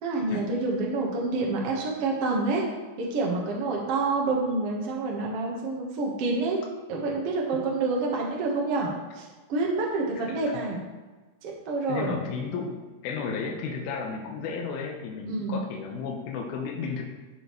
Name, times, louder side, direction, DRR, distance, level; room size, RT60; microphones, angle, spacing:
voice 1, 0.0-2.6 3.0-6.6 6.9-8.9 9.1-10.8 11.4-12.1 15.3-15.6, right 3 dB, 65° right, -2 dB, 1.4 m, -28 dB
voice 2, 11.9-12.8 13.0-17.0, left 5 dB, 75° left, 0 dB, 2.6 m, -33 dB
13.5 x 5.0 x 3.1 m, 1.2 s
omnidirectional pair, 4.6 m